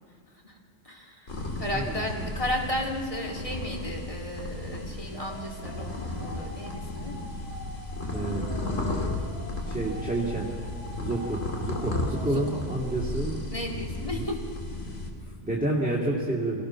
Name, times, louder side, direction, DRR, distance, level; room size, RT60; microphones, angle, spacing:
voice 1, 0.8-7.1 12.3-12.6 13.5-14.3, left 1 dB, 25° left, -1 dB, 2.6 m, -34 dB
sound 1, 1.3-15.1, left 2 dB, 85° left, 2.8 m, -34 dB
voice 2, 1.6-2.3 8.1-9.1 9.6-10.5 11.0-13.4 14.1-14.3 15.2-16.6, right 2 dB, 5° right, -4 dB, 2.2 m, -30 dB
sound 2, 5.1-12.5, equal, 60° left, 3.6 m, -46 dB
26.5 x 18.0 x 5.8 m, 2.6 s
omnidirectional pair, 1.3 m